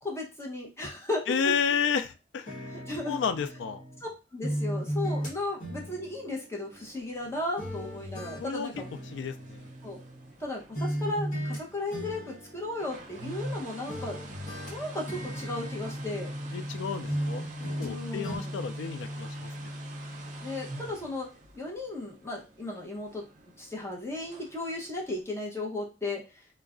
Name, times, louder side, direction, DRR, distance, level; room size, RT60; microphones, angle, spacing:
voice 1, 0.0-1.5 2.7-3.2 4.0-8.7 9.8-10.0 10.4-14.2 14.7-16.3 17.8-18.5 20.4-21.3 21.5-23.2 23.6-26.2, left 2 dB, 15° left, -2 dB, 0.7 m, -35 dB
voice 2, 1.3-2.7 3.1-3.8 8.4-8.7 9.1-9.7 16.5-17.4 17.8-19.5, left 6 dB, 90° left, 10 dB, 0.3 m, -31 dB
sound 1, 2.5-4.1 4.4-7.3 7.6-10.4 10.8-11.6 11.9-13.6 13.9-16.8 17.1-18.0 18.2-18.4, equal, 45° left, 1.0 m, -37 dB
sound 2, 6.7-25.2, equal, 45° right, 0.6 m, -42 dB
2.3 x 2.1 x 3.5 m, 0.30 s
head